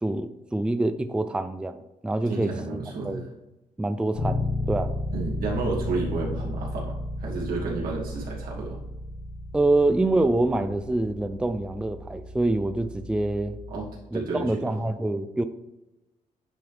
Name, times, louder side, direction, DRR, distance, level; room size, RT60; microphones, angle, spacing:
voice 1, 0.0-2.8 3.0-3.3 3.8-5.0 9.5-13.6 14.1-15.4, right 2 dB, 5° right, 10 dB, 0.4 m, -26 dB
voice 2, 2.3-3.3 5.1-8.8 13.7-13.9 14.1-14.7, right 3 dB, 80° right, -4 dB, 2.4 m, -31 dB
Bass guitar, 4.1-14.0, left 1 dB, 80° left, 1.5 m, -33 dB
10.0 x 3.8 x 3.3 m, 1.0 s
cardioid pair, 80°, 15 cm